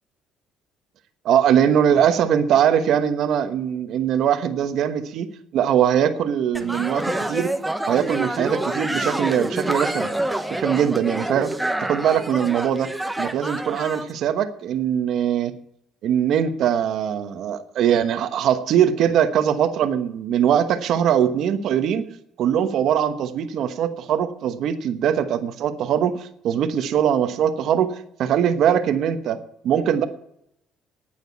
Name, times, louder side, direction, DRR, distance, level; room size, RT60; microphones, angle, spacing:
voice 1, 1.2-5.3 5.5-7.5 7.8-10.1 10.5-11.5 11.8-12.9 13.2-15.5 16.0-22.1 22.4-30.1, right 9 dB, 70° right, 9 dB, 1.1 m, -21 dB
sound 1, 6.5-14.1, right 1 dB, 5° right, 1.1 m, -27 dB
9.4 x 9.2 x 8.4 m, 0.75 s
cardioid pair, 100°, 0 cm